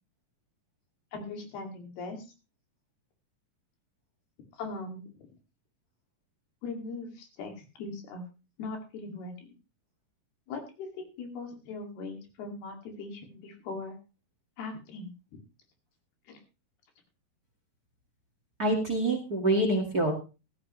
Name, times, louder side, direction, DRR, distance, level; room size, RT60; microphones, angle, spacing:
voice 1, 1.1-2.3 4.5-5.1 6.6-8.2 8.6-9.5 10.5-14.0 14.6-15.1 16.3-16.4, left 3 dB, 90° left, 3 dB, 4.5 m, -40 dB
voice 2, 18.6-20.1, right 1 dB, 35° right, 4 dB, 1.8 m, -26 dB
14.5 x 13.5 x 3.2 m, 0.31 s
omnidirectional pair, 4.4 m